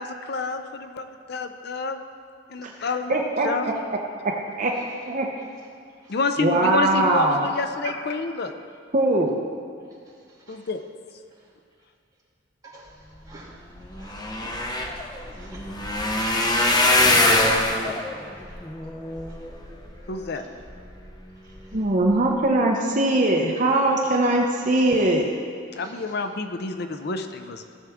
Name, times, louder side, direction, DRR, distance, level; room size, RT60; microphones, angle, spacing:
voice 1, 0.0-2.0 2.5-3.2 3.4-3.8 6.1-8.5 10.5-10.8 20.1-20.4 25.8-27.6, left 3 dB, 60° left, 7 dB, 0.6 m, -28 dB
voice 2, 3.1-3.5 4.2-4.3 4.6-4.7 5.0-5.3 6.4-7.4 8.9-9.3 21.7-25.3, right 2 dB, 40° right, 0 dB, 0.8 m, -21 dB
sound 1, 13.5-13.6 13.8-20.1 20.7-21.1 21.6-21.8 22.0-22.1, left 1 dB, 20° left, 0.8 m, -23 dB
voice 3, 14.0-15.9 21.4-21.8 25.7-26.1 26.7-26.9, right 1 dB, 20° right, -7 dB, 2.6 m, -50 dB
16.0 x 7.2 x 3.6 m, 2.2 s
head